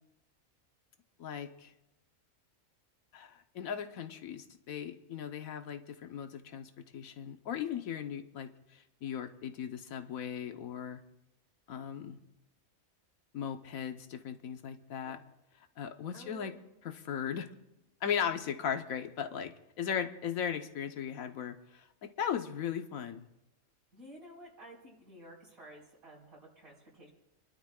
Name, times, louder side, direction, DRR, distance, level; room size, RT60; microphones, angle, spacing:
voice 1, 1.2-1.7 3.1-8.5 9.0-11.0 11.7-12.2 13.3-15.2 15.8-16.5 16.8-17.5 18.0-21.6 22.0-23.2, left 8 dB, 80° left, 8 dB, 1.3 m, -37 dB
voice 2, 16.1-16.6 19.8-20.0 23.9-27.1, equal, 90° right, -3 dB, 5.0 m, -53 dB
30.0 x 12.0 x 2.4 m, 0.92 s
omnidirectional pair, 1.5 m